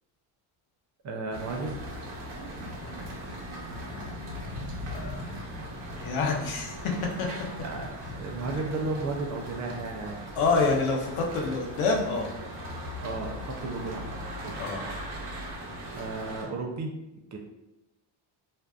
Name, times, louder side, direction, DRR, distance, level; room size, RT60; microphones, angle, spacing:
voice 1, 1.0-1.8 7.6-10.2 13.0-14.9 15.9-16.9 17.3-17.4, right 3 dB, 40° right, 1 dB, 0.4 m, -34 dB
sound 1, 1.3-16.5, equal, 80° right, 0.9 m, -39 dB
voice 2, 3.9-4.6 4.9-5.5 5.9-6.8 7.2-7.3 10.4-12.3 14.6-14.8, left 3 dB, 75° left, 1 dB, 0.7 m, -28 dB
2.6 x 2.3 x 2.2 m, 0.93 s
cardioid pair, 100°, 49 cm